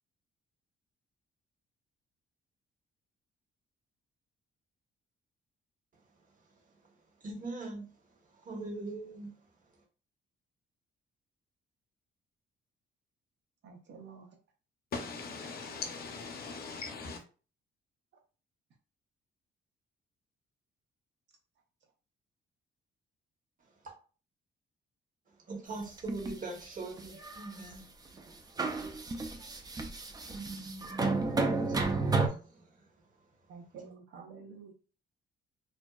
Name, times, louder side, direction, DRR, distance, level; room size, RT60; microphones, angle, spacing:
voice 1, 5.9-9.8 23.6-23.9 25.3-33.8, right 3 dB, 45° right, 0.9 m, -45 dB
voice 2, 13.6-14.4 33.5-34.7, right 5 dB, 65° right, 0.7 m, -49 dB
voice 3, 14.9-17.2, left 4 dB, 50° left, 0.6 m, -40 dB
sound 1, 25.8-26.4 27.0-27.7 28.2-28.3 28.6-32.3, right 3 dB, 20° right, 0.4 m, -32 dB
2.5 x 2.1 x 2.2 m
cardioid pair, 90°, 20 cm